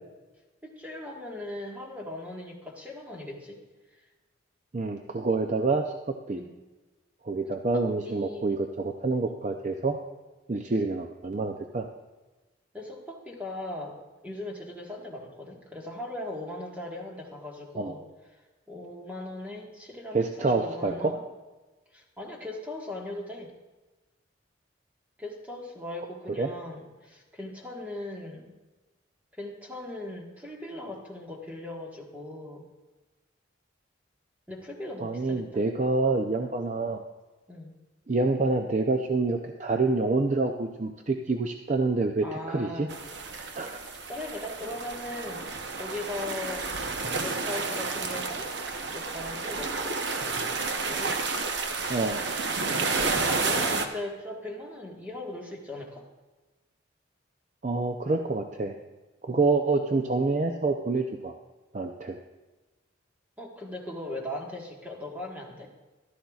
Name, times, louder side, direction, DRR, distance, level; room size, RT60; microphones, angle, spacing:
voice 1, 0.6-3.6 3.9-4.0 6.4-6.5 7.7-8.5 12.7-14.0 14.2-18.0 18.7-21.2 21.9-23.5 25.2-28.6 29.4-32.7 34.5-35.6 37.5-37.8 42.2-42.9 44.1-45.4 45.8-46.7 47.2-48.5 48.8-50.0 50.9-51.2 52.5-56.0 59.3-59.6 63.4-65.7, left 1 dB, 10° right, -1 dB, 1.4 m, -39 dB
voice 2, 4.7-6.4 7.2-10.0 10.5-11.9 17.8-17.9 20.1-21.2 26.4-26.5 35.0-37.0 38.1-42.9 43.3-43.8 51.9-52.2 57.6-58.7 59.2-61.3 61.7-62.2, right 3 dB, 40° right, 4 dB, 0.5 m, -27 dB
sound 1, 42.9-53.9, right 4 dB, 65° right, 0.8 m, -31 dB
14.5 x 12.5 x 2.4 m, 1.2 s
head